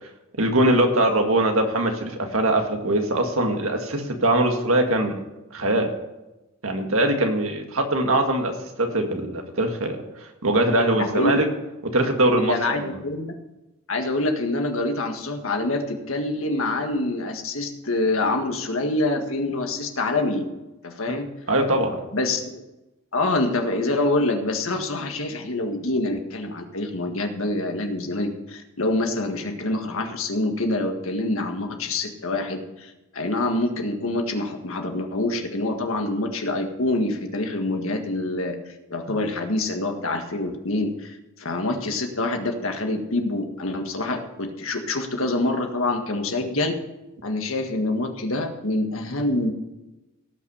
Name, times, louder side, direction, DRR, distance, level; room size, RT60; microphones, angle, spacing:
voice 1, 0.4-5.1 5.5-5.9 6.6-8.5 8.8-10.0 10.4-11.5 11.9-13.0 21.5-22.0, right 1 dB, 70° right, 3 dB, 2.0 m, -22 dB
voice 2, 11.0-11.3 12.4-13.3 13.9-20.5 20.8-21.3 22.1-22.4 23.1-38.6 38.9-46.8 47.2-49.5, left 2 dB, 70° left, 4 dB, 1.8 m, -26 dB
18.0 x 6.0 x 5.6 m, 1.0 s
head